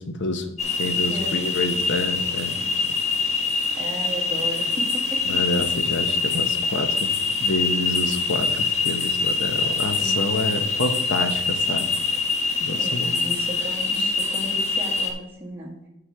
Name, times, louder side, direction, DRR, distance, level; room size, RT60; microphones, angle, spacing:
voice 1, 0.1-2.6 5.3-7.1 7.4-11.9 12.6-13.1, left 2 dB, 55° left, 8 dB, 0.8 m, -28 dB
sound 1, 0.6-15.1, left 4 dB, 30° left, 1.1 m, -24 dB
voice 2, 1.1-1.8 2.5-2.6 3.8-5.4 10.0-10.6 12.7-15.7, equal, 10° right, -5 dB, 1.6 m, -35 dB
7.9 x 6.3 x 4.6 m, 0.93 s
head